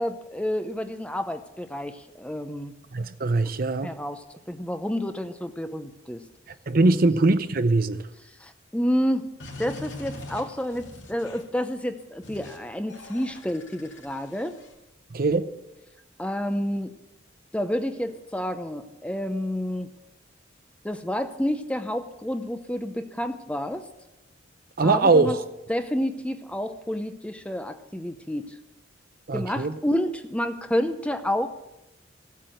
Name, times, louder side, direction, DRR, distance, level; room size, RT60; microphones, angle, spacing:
voice 1, 0.0-2.7 3.8-6.2 8.4-9.3 9.6-14.6 16.2-16.9 17.5-19.9 20.8-23.9 24.8-25.4 25.7-28.6 29.3-31.5, equal, 5° left, 0.7 m, -29 dB
voice 2, 2.9-3.9 6.7-8.0 15.1-15.5 24.8-25.4 29.3-29.8, right 3 dB, 50° right, 0.7 m, -21 dB
sound 1, 9.4-11.6 12.2-12.6 12.9-14.7, left 1 dB, 70° left, 2.6 m, -42 dB
16.0 x 8.4 x 7.8 m
head